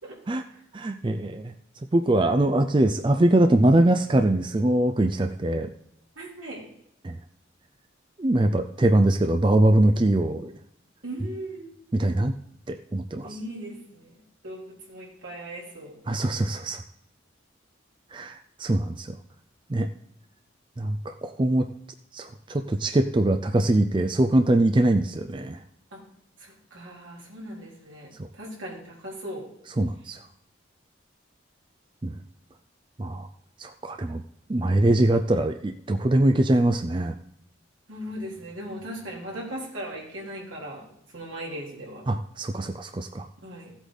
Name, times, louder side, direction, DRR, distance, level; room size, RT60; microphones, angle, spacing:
voice 1, 0.7-1.5 1.9-5.7 7.0-7.2 8.2-10.5 11.9-12.3 12.7-13.3 16.1-16.8 18.1-19.2 19.7-19.9 20.8-21.7 22.1-25.6 28.2-28.3 29.8-30.2 32.0-32.2 33.0-33.3 33.6-34.2 34.5-37.1 42.1-43.3, right 1 dB, 25° right, 7 dB, 0.4 m, -22 dB
voice 2, 6.2-6.7 11.0-11.8 13.2-15.9 25.9-26.0 26.4-29.5 37.9-40.9 41.1-42.1 43.4-43.7, right 1 dB, 80° right, -3 dB, 3.6 m, -38 dB
15.5 x 8.2 x 4.0 m, 0.76 s
head